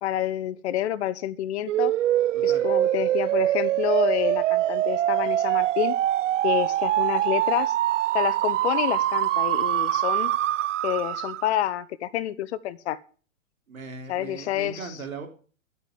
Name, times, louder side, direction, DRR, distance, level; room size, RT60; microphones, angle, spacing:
voice 1, 0.0-1.9 2.4-5.9 6.4-7.7 8.1-10.3 10.8-13.0 14.1-14.8, left 12 dB, 55° left, 0.9 m, -28 dB
sound 1, 1.7-11.5, right 13 dB, 65° right, 0.5 m, -24 dB
voice 2, 2.3-2.7 13.7-15.3, right 4 dB, 85° right, 3.7 m, -38 dB
12.0 x 8.6 x 7.4 m
hypercardioid pair, 120°, 40 cm